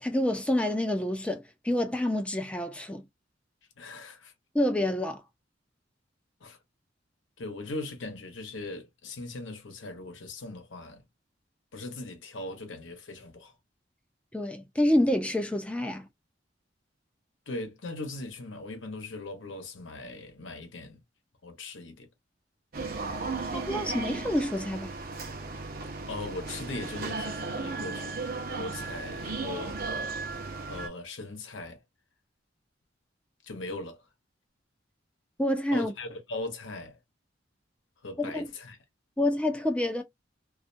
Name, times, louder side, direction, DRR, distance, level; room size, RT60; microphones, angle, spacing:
voice 1, 0.0-3.0 4.5-5.2 14.3-16.1 23.5-24.9 35.4-35.9 38.3-38.5 39.2-40.0, left 1 dB, 5° left, 0.4 m, -27 dB
voice 2, 3.8-4.3 6.4-6.6 7.4-11.0 11.7-13.5 17.5-21.0 21.4-22.1 26.1-28.2 28.5-29.8 30.7-31.8 33.4-34.0 35.7-37.0 38.0-38.8, left 2 dB, 80° left, 0.9 m, -39 dB
sound 1, 22.7-30.9, right 3 dB, 50° right, 0.6 m, -35 dB
2.4 x 2.1 x 2.5 m
head